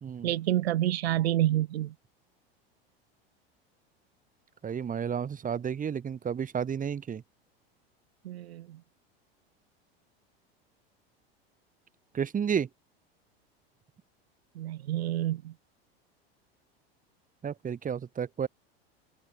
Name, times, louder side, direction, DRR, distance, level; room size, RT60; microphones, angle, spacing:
voice 1, 0.2-1.9 8.2-8.8 14.6-15.5, right 13 dB, 90° right, 0.7 m, -28 dB
voice 2, 4.6-7.2 12.1-12.7 17.4-18.5, right 7 dB, 25° right, 2.2 m, -31 dB
hypercardioid pair, 95°, 30 cm